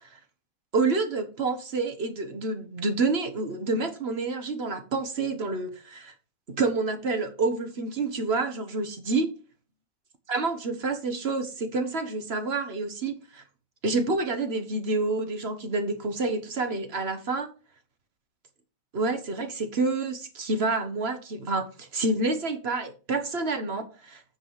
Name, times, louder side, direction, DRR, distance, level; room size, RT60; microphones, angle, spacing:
voice 1, 0.7-6.1 6.5-9.3 10.3-13.4 13.8-17.5 18.9-24.2, right 3 dB, 50° right, 1.5 m, -28 dB
8.9 x 4.9 x 5.6 m
omnidirectional pair, 1.4 m